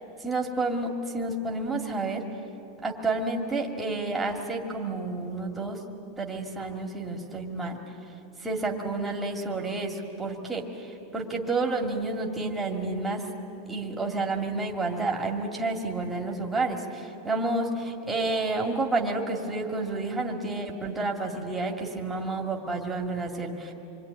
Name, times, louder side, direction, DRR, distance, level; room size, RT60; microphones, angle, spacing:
voice 1, 0.2-2.2 2.8-5.8 6.2-7.8 8.4-13.2 13.7-23.7, right 3 dB, 5° right, 0 dB, 2.3 m, -30 dB
27.0 x 23.0 x 9.5 m, 3.0 s
supercardioid pair, 160°, 0 cm